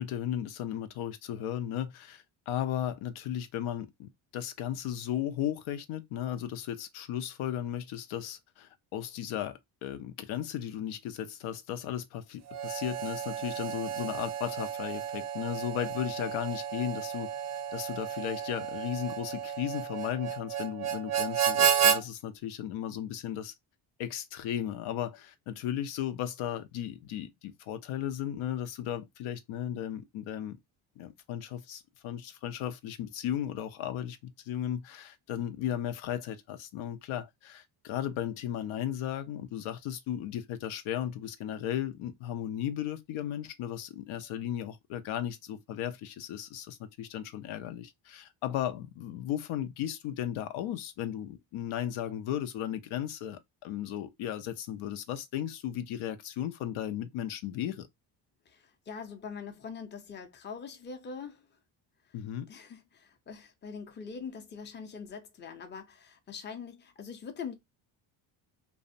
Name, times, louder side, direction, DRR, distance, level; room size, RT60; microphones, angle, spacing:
voice 1, 0.0-17.3 17.7-23.5 24.0-30.6 31.0-57.9 62.1-62.5, left 10 dB, 80° left, 0.6 m, -35 dB
Harmonica, 12.5-22.0, right 8 dB, 35° right, 0.4 m, -31 dB
voice 2, 58.5-61.4 62.5-67.5, left 6 dB, 25° left, 0.5 m, -43 dB
2.6 x 2.1 x 2.5 m
cardioid pair, 100°, 48 cm